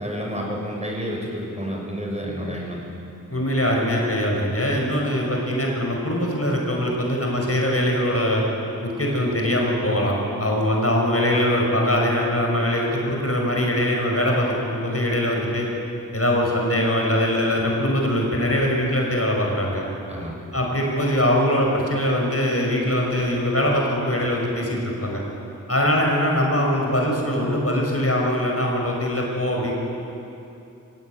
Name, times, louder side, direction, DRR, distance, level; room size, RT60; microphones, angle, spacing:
voice 1, 0.0-2.8 20.1-20.4, equal, 20° right, -2 dB, 6.6 m, -30 dB
voice 2, 3.3-8.4 8.8-15.7 16.1-19.8 20.5-25.2 25.7-29.7, left 1 dB, 45° left, -1 dB, 5.8 m, -22 dB
24.5 x 17.0 x 9.7 m, 2.8 s
wide cardioid pair, 50°, 34 cm